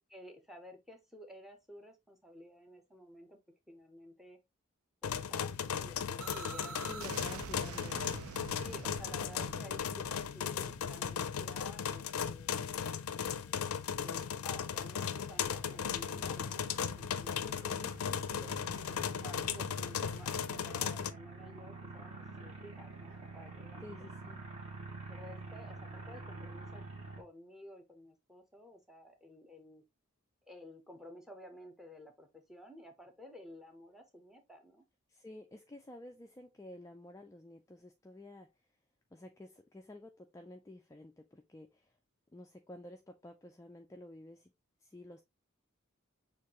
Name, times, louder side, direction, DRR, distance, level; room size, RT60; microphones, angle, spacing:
voice 1, 0.1-3.4 3.7-4.4 5.0-7.1 8.6-12.9 13.1-13.7 14.0-17.4 18.9-23.9 25.1-26.8 27.2-29.8 30.5-34.8, equal, ahead, 0.8 m, -53 dB
sound 1, 5.0-21.1, left 7 dB, 85° left, 0.4 m, -37 dB
sound 2, 6.2-11.9, right 6 dB, 80° right, 0.5 m, -47 dB
voice 2, 6.9-8.3 17.4-19.1 23.8-24.4 35.1-38.7 39.1-42.0 42.3-44.5 44.8-45.2, left 1 dB, 15° left, 0.3 m, -52 dB
sound 3, 15.6-27.2, right 3 dB, 30° right, 1.3 m, -48 dB
6.5 x 2.6 x 2.9 m
head